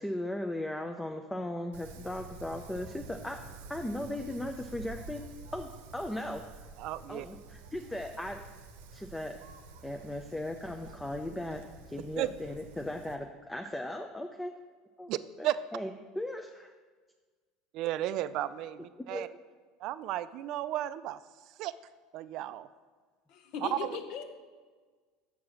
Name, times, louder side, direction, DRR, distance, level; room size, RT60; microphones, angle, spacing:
voice 1, 0.0-3.4 3.7-5.2 5.5-6.4 7.1-8.4 8.9-9.4 9.8-11.6 11.9-14.5 15.0-15.1 15.4-16.5 19.1-19.2, left 1 dB, 10° left, 4 dB, 0.5 m, -37 dB
Wind, 1.7-13.1, right 4 dB, 85° right, 0.7 m, -49 dB
voice 2, 6.8-7.3 12.2-12.3 15.1-15.2 15.4-15.6 17.7-19.3 19.8-21.2 21.6-21.7 22.1-22.7 23.6-24.0, right 14 dB, 60° right, 14 dB, 0.3 m, -33 dB
voice 3, 23.3-24.2, left 6 dB, 60° left, 7 dB, 0.9 m, -38 dB
7.0 x 4.8 x 6.1 m, 1.5 s
supercardioid pair, 95°, 0 cm